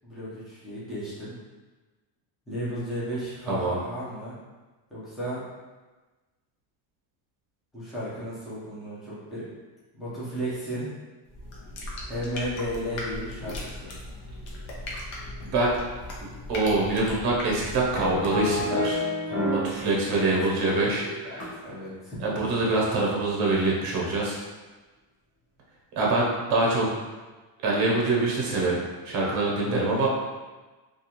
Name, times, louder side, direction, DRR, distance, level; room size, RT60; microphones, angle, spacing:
voice 1, 0.0-1.3 2.5-4.4 4.9-5.4 7.7-9.4 9.9-10.9 12.1-13.9 19.8-20.3 21.6-22.2 29.7-30.0, equal, ahead, -11 dB, 0.6 m, -34 dB
voice 2, 3.5-3.8 15.4-15.7 16.2-19.0 19.5-21.5 22.2-24.4 26.0-26.9 27.6-28.8 29.0-30.1, right 2 dB, 50° right, -3 dB, 0.8 m, -25 dB
sound 1, 11.3-18.5, left 1 dB, 80° left, 0.8 m, -38 dB
sound 2, 18.0-19.8 20.1-21.7 22.2-22.4, left 1 dB, 35° left, 0.8 m, -28 dB
2.4 x 2.3 x 2.8 m, 1.3 s
cardioid pair, 165°, 46 cm